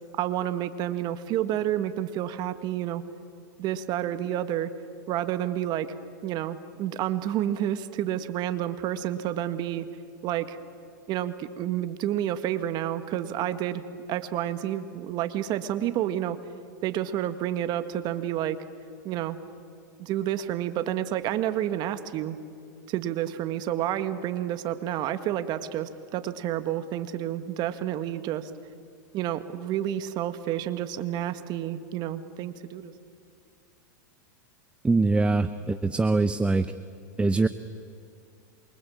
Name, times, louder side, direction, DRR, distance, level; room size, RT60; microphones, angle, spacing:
voice 1, 0.1-3.0 3.6-4.7 5.1-5.9 6.2-9.9 10.2-10.6 11.1-13.8 14.1-16.4 16.8-18.6 19.0-19.4 20.0-22.4 22.9-28.5 29.1-32.9, right 11 dB, 45° right, 10 dB, 1.9 m, -29 dB
voice 2, 34.8-36.7 37.2-37.5, right 3 dB, 10° right, 11 dB, 0.8 m, -23 dB
28.0 x 23.5 x 8.8 m, 2.4 s
hypercardioid pair, 115°, 10 cm